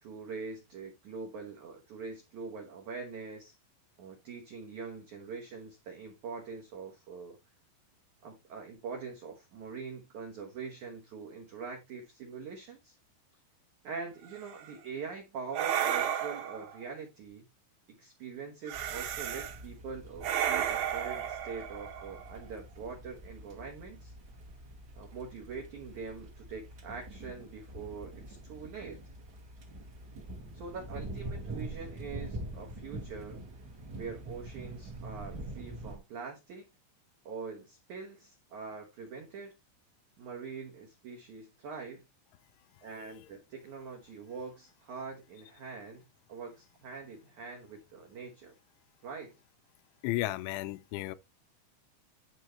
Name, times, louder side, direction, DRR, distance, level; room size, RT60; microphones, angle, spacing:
voice 1, 0.0-3.5 4.0-7.4 8.2-13.0 13.8-17.4 17.9-24.1 25.0-29.0 30.5-33.4 34.0-36.6 37.2-39.5 40.2-42.0 42.8-46.0 46.3-48.5 49.0-49.3, right 5 dB, 80° right, 1.7 m, -43 dB
sound 1, 14.3-14.7 15.5-16.8 18.7-19.6 20.2-22.4, right 10 dB, 65° right, 2.5 m, -33 dB
sound 2, 18.7-36.0, right 1 dB, 50° right, 1.2 m, -45 dB
voice 2, 50.0-51.2, left 17 dB, 85° left, 3.0 m, -34 dB
10.5 x 4.6 x 3.2 m
omnidirectional pair, 5.3 m